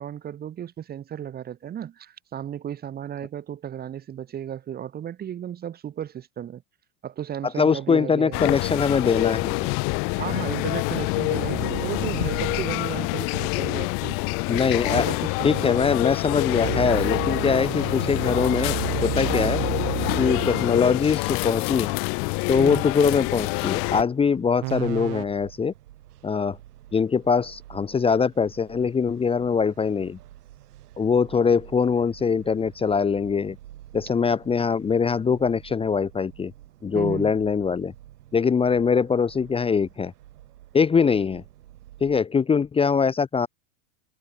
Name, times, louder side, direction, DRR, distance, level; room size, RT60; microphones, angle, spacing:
voice 1, 0.0-6.6 7.0-8.5 10.1-14.2 14.8-15.8 19.4-19.7 22.6-22.9 36.9-37.3, right 10 dB, 20° right, 1.5 m, -34 dB
voice 2, 7.6-9.7 14.5-15.1 15.4-19.6 20.2-21.9 22.5-25.7 26.2-26.6 26.9-30.2 31.0-33.6 33.9-36.5 36.8-37.9 38.3-40.1 40.7-41.4 42.0-43.5, left 5 dB, 10° left, 1.3 m, -22 dB
sound 1, 8.3-24.0, left 35 dB, 30° left, 0.5 m, -26 dB
sound 2, 11.3-12.8 16.6-20.8 24.6-25.2, right 27 dB, 45° right, 3.7 m, -31 dB
sound 3, 24.0-42.2, right 13 dB, 85° right, 5.5 m, -49 dB
supercardioid pair, 145°, 45 cm